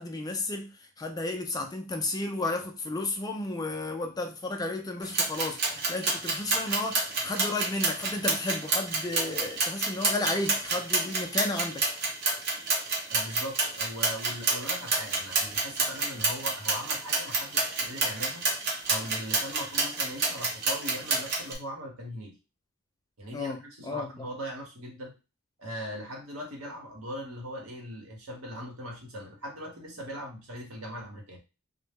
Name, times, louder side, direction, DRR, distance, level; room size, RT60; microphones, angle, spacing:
voice 1, 0.0-11.9 23.3-23.6 23.8-24.3, left 2 dB, 20° left, 0.3 m, -33 dB
sound 1, 5.0-21.6, right 3 dB, 50° right, 0.7 m, -29 dB
voice 2, 13.1-18.6 18.9-22.4 23.2-25.1 25.6-31.4, equal, 80° right, 0.9 m, -40 dB
2.0 x 2.0 x 3.4 m
head